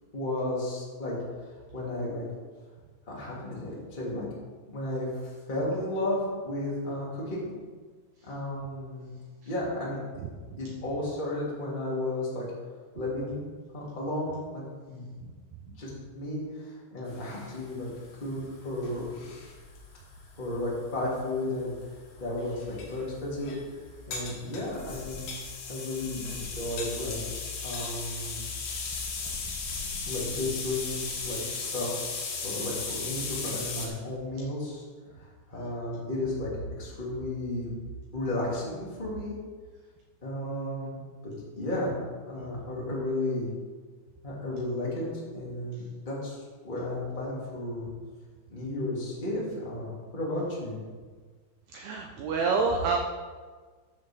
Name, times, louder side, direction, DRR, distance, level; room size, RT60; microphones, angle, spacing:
voice 1, 0.1-1.2 1.7-2.2 3.1-4.3 4.7-7.5 8.2-9.1 9.4-10.2 10.6-12.4 12.9-13.5 13.7-14.6 14.9-15.0 15.8-17.9 18.2-19.1 20.4-21.7 22.2-23.5 24.1-25.2 25.7-28.4 30.0-31.9 32.4-34.8 35.5-36.5 36.8-37.7 38.1-39.3 40.2-41.0 41.2-41.9 42.3-43.5 44.2-47.9 48.5-50.8, left 1 dB, 15° left, -6 dB, 1.7 m, -33 dB
voice 2, 15.2-15.6 51.7-53.0, right 4 dB, 80° right, 2 dB, 2.3 m, -28 dB
sound 1, 17.1-33.9, left 4 dB, 65° left, 3.4 m, -37 dB
13.0 x 7.7 x 3.7 m, 1.5 s
omnidirectional pair, 5.5 m